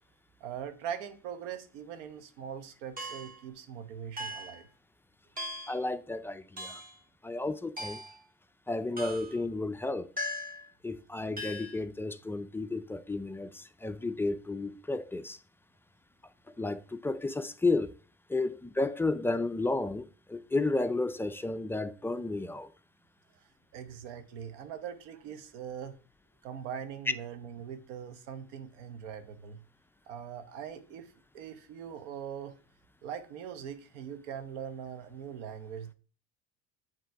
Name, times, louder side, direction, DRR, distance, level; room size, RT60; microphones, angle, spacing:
voice 1, 0.4-4.7 23.7-25.9 26.4-29.6 30.1-32.6 33.0-35.9, right 8 dB, 80° right, 1.0 m, -41 dB
sound 1, 3.0-3.4 4.2-4.6 5.4-5.8 6.6-6.9 7.8-8.2 9.0-9.4 10.2-10.7 11.4-11.8, left 1 dB, 25° right, 1.7 m, -39 dB
voice 2, 5.7-6.8 7.2-8.0 8.7-10.1 10.8-15.4 16.6-17.9 18.3-22.7, left 2 dB, 5° left, 0.3 m, -32 dB
7.7 x 3.0 x 4.5 m
supercardioid pair, 85°, 35 cm